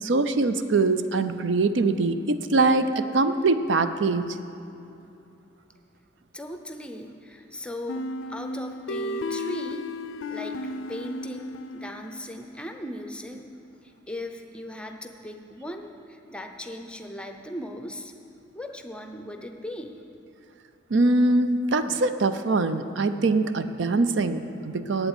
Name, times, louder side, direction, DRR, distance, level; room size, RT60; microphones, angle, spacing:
voice 1, 0.0-4.4 20.9-25.1, right 3 dB, 75° right, 10 dB, 0.5 m, -23 dB
voice 2, 6.3-9.9 10.3-13.5 13.8-18.1 18.5-20.0, left 1 dB, 5° left, 5 dB, 0.6 m, -38 dB
sound 1, 7.9-12.6, left 2 dB, 90° left, 0.4 m, -34 dB
8.2 x 8.2 x 9.0 m, 2.8 s
head